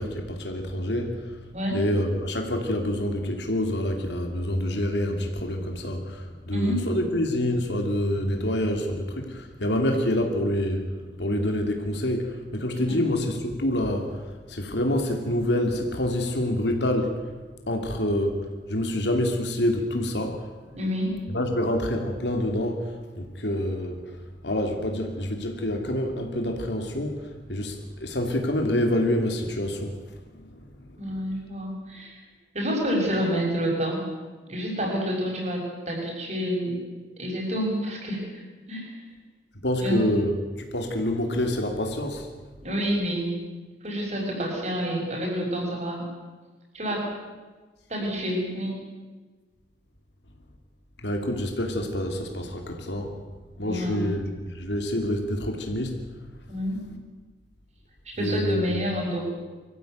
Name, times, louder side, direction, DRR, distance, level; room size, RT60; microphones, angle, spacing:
voice 1, 0.0-1.4 1.7-10.9 11.2-17.2 17.7-20.5 21.3-24.2 24.4-29.9 30.3-31.1 39.6-42.3 51.0-53.2 53.6-56.0 58.2-58.7, left 1 dB, 75° left, 4 dB, 2.8 m, -27 dB
voice 2, 6.5-6.9 12.9-13.0 20.8-21.2 31.0-32.2 32.5-34.0 34.5-36.8 37.2-38.2 38.7-38.9 39.8-40.0 42.6-43.4 43.8-46.0 46.7-47.1 47.9-48.8 53.6-54.0 56.5-56.8 58.0-59.2, equal, 40° right, 0 dB, 6.4 m, -28 dB
24.0 x 15.0 x 9.3 m, 1.3 s
head